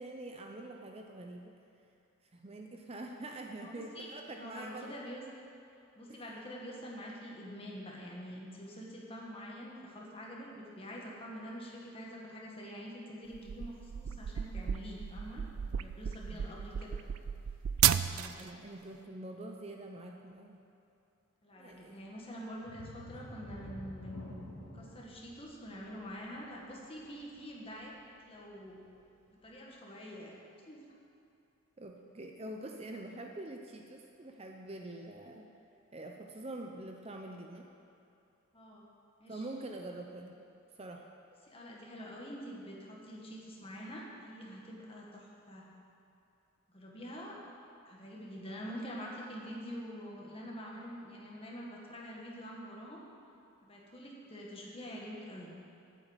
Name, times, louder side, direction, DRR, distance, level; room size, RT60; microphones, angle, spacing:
voice 1, 0.0-1.5 2.3-4.9 6.1-6.2 16.3-16.5 18.2-20.6 21.6-22.0 31.8-35.5 35.9-37.7 39.3-40.4 40.8-41.1, right 2 dB, 30° right, 2 dB, 0.6 m, -45 dB
voice 2, 3.6-4.1 4.4-5.2 5.9-17.0 21.4-24.5 24.7-27.9 28.2-29.0 29.4-30.4 30.7-30.8 38.5-38.8 39.2-39.4 41.4-45.7 46.7-47.4 47.8-53.0 53.6-55.5, equal, 25° left, -3 dB, 1.8 m, -46 dB
sound 1, 13.3-18.5, right 10 dB, 80° right, 0.4 m, -33 dB
sound 2, 22.6-28.1 28.5-28.7 29.2-29.3, left 1 dB, 60° left, 2.1 m, -49 dB
9.2 x 8.2 x 8.2 m, 2.7 s
head